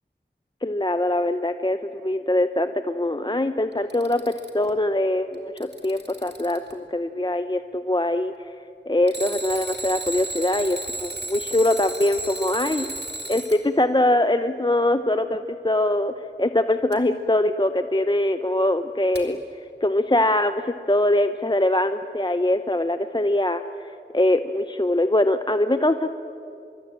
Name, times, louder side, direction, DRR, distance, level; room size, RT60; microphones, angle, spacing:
voice 1, 0.6-1.8 2.0-8.3 8.9-12.9 13.3-16.1 16.4-19.4 19.8-26.1, left 1 dB, 25° left, 9 dB, 0.8 m, -23 dB
Alarm, 3.7-4.7 5.3-6.7 9.1-13.6 16.9-17.0 19.2-19.3, right 2 dB, 65° right, 3.1 m, -34 dB
25.0 x 23.5 x 8.8 m, 2.7 s
wide cardioid pair, 40°, 19 cm